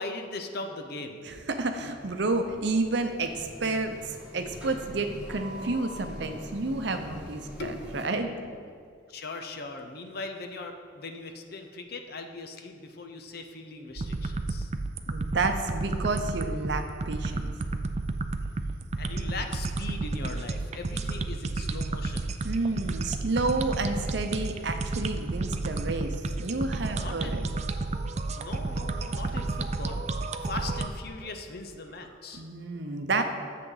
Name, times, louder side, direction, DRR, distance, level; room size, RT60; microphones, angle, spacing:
voice 1, 0.0-1.3 7.6-8.1 8.4-14.7 19.0-22.4 26.9-27.5 28.4-30.0 30.4-32.4, left 3 dB, 55° left, 5 dB, 0.8 m, -39 dB
voice 2, 1.2-8.3 15.1-17.5 22.4-27.5 32.3-33.2, right 3 dB, 60° right, 6 dB, 0.7 m, -30 dB
sound 1, 2.0-8.0, equal, 5° right, 1.3 m, -43 dB
sound 2, 14.0-30.9, right 3 dB, 35° right, 0.4 m, -31 dB
10.5 x 7.6 x 3.9 m, 2.1 s
head